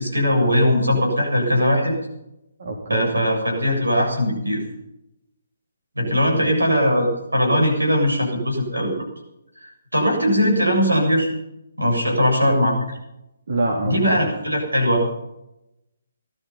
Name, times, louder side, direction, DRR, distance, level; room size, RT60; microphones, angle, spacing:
voice 1, 0.0-2.0 2.9-4.6 6.0-9.0 9.6-11.3 11.8-12.8 13.8-15.1, equal, 85° right, 2 dB, 7.4 m, -20 dB
voice 2, 2.6-3.1 6.0-6.5 13.5-14.3, right 2 dB, 55° right, 0 dB, 3.3 m, -26 dB
19.0 x 13.0 x 5.7 m, 0.87 s
figure-of-eight pair, 140°, 0 cm